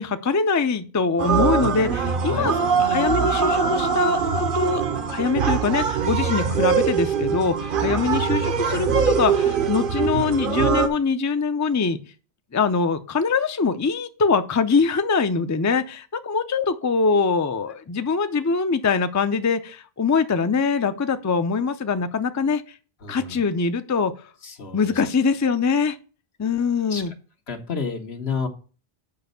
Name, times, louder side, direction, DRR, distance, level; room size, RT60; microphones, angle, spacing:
voice 1, 0.0-2.5 2.8-4.8 5.1-12.0 12.5-22.6 23.1-24.1 24.7-26.0 26.4-27.1, left 4 dB, 25° left, 9 dB, 0.4 m, -23 dB
sound 1, 1.2-10.9, right 6 dB, 60° right, 1.0 m, -22 dB
voice 2, 23.0-23.4 24.4-25.0 26.9-27.0 27.5-28.5, left 5 dB, 85° left, 5 dB, 1.5 m, -31 dB
6.7 x 5.1 x 6.7 m, 0.37 s
omnidirectional pair, 1.0 m